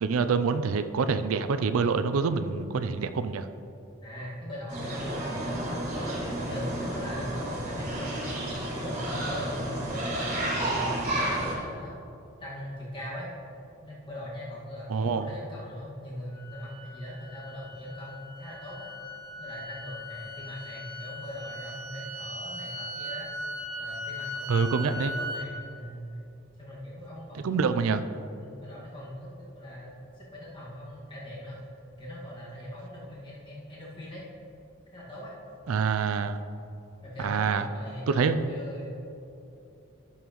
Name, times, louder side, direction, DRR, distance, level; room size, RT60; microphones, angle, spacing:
voice 1, 0.0-3.5 14.9-15.3 24.5-25.1 27.4-28.0 35.7-36.4 37.2-37.7 38.1-38.5, right 5 dB, 85° right, 10 dB, 0.4 m, -26 dB
voice 2, 4.0-8.4 8.8-12.0 12.4-13.3 13.8-18.9 19.4-23.3 23.8-26.0 26.6-28.0 28.4-31.6 32.0-34.3 34.9-35.3 37.0-39.0, equal, 25° left, -7 dB, 1.8 m, -40 dB
sound 1, 4.7-11.5, right 1 dB, 35° right, 2.2 m, -31 dB
sound 2, 16.3-25.5, equal, 50° right, 1.2 m, -39 dB
12.5 x 7.2 x 3.1 m, 2.8 s
head